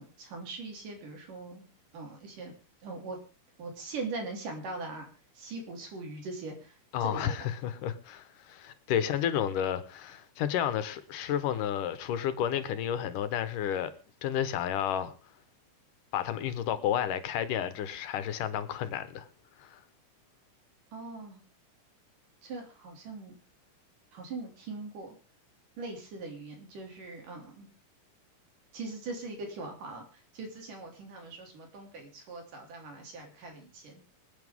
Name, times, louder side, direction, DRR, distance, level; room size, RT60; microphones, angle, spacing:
voice 1, 0.0-1.7 1.9-2.5 2.8-3.2 3.6-5.1 5.3-7.3 20.9-21.4 22.4-23.4 24.1-25.1 25.8-27.7 28.7-34.0, right 3 dB, 80° right, 5.1 m, -41 dB
voice 2, 6.9-13.9 14.2-15.1 16.1-19.3 19.6-19.8, left 9 dB, 85° left, 2.9 m, -31 dB
26.0 x 9.0 x 3.6 m
omnidirectional pair, 3.7 m